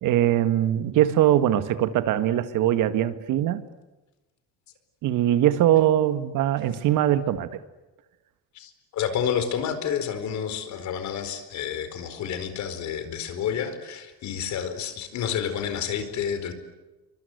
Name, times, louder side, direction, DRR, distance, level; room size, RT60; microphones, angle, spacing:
voice 1, 0.0-3.6 5.0-7.6, right 12 dB, 60° right, 11 dB, 1.7 m, -22 dB
voice 2, 8.5-16.5, left 8 dB, 50° left, 10 dB, 4.6 m, -29 dB
29.0 x 24.5 x 8.1 m, 1.1 s
cardioid pair, 170°, 36 cm